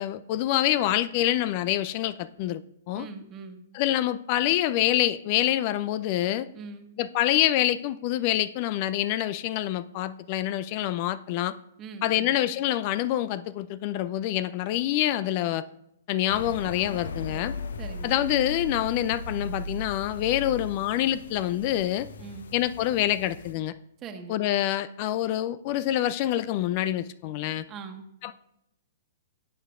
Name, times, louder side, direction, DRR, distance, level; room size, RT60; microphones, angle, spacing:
voice 1, 0.0-2.6 2.9-3.1 3.7-6.5 7.0-11.5 12.0-15.6 16.1-17.5 18.0-22.1 22.5-23.7 24.3-27.6 28.2-28.3, left 13 dB, 40° left, 15 dB, 0.4 m, -26 dB
voice 2, 2.9-3.6 6.5-6.9 11.8-12.3 17.8-18.2 22.2-22.6 24.0-24.4 27.7-28.1, right 5 dB, 25° right, 5 dB, 1.4 m, -42 dB
sound 1, 16.3-23.5, left 2 dB, 65° left, 0.9 m, -38 dB
17.0 x 8.1 x 2.5 m, 0.80 s
figure-of-eight pair, 110°, 0 cm